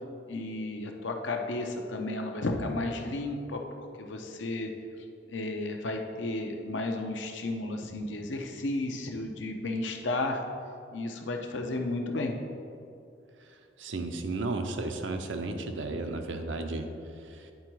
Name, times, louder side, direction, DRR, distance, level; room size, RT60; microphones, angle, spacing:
voice 1, 0.3-3.6 4.0-4.7 5.3-10.4 10.9-12.4, left 2 dB, 85° left, 3 dB, 0.7 m, -33 dB
voice 2, 13.4-17.5, right 2 dB, 90° right, 5 dB, 0.7 m, -34 dB
9.3 x 3.8 x 4.6 m, 2.5 s
head